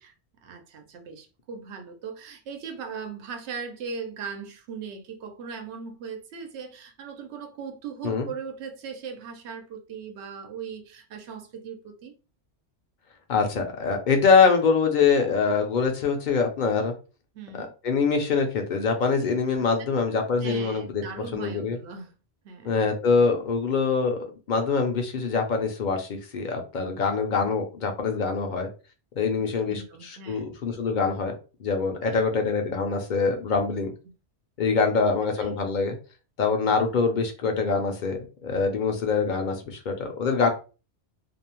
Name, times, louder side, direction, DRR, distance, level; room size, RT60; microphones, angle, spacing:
voice 1, 0.4-12.2 17.3-17.7 19.8-19.9 20.4-22.1 22.4-22.8 27.4-27.5 29.4-30.5 32.1-32.2 35.4-35.6 38.9-39.0, right 6 dB, 75° right, 0.9 m, -39 dB
voice 2, 13.3-16.9 17.6-21.0 21.3-21.8 22.6-28.7 29.2-31.3 31.6-33.9 34.6-36.0 36.4-40.5, left 5 dB, 55° left, 0.6 m, -24 dB
2.6 x 2.0 x 2.8 m
omnidirectional pair, 1.2 m